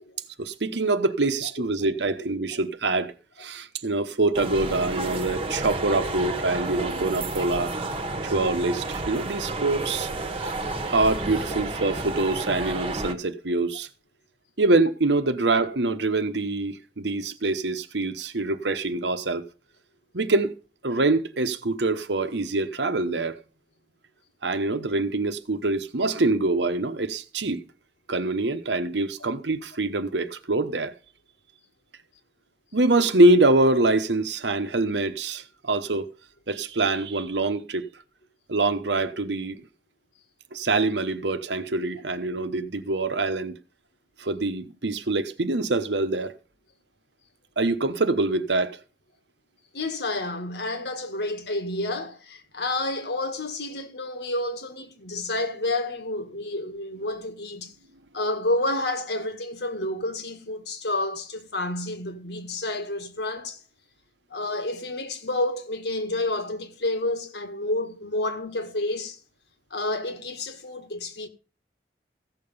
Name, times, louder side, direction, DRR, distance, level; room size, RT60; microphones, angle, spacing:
voice 1, 0.4-3.1 3.4-7.7 8.2-10.1 10.4-10.5 10.9-13.9 14.6-19.4 20.1-20.5 20.8-23.4 24.4-27.6 28.1-31.0 32.7-36.1 36.5-37.8 38.5-39.6 40.5-43.6 44.2-46.3 47.6-48.8, right 2 dB, 75° right, 1.1 m, -24 dB
sound 1, 4.3-13.1, right 2 dB, 30° right, 1.3 m, -31 dB
voice 2, 49.7-57.7 58.1-63.6 64.3-69.2 69.7-71.3, left 2 dB, 65° left, 1.7 m, -29 dB
15.5 x 6.9 x 5.5 m
head